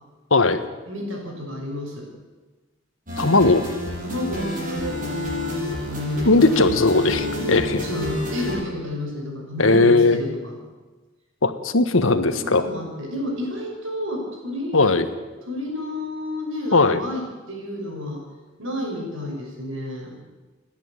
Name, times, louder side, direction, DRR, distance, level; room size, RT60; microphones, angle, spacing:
voice 1, 0.3-0.6 3.2-3.6 6.2-7.8 9.6-10.2 11.4-12.7 14.7-15.0 16.7-17.0, left 3 dB, 80° left, 10 dB, 1.5 m, -18 dB
voice 2, 0.9-2.1 4.0-6.8 7.2-10.6 12.3-14.9 15.5-18.2 18.6-20.2, left 1 dB, 75° right, 1 dB, 6.4 m, -30 dB
sound 1, 3.1-8.6, left 1 dB, 45° right, 6.9 m, -30 dB
28.5 x 10.5 x 8.9 m, 1.2 s
head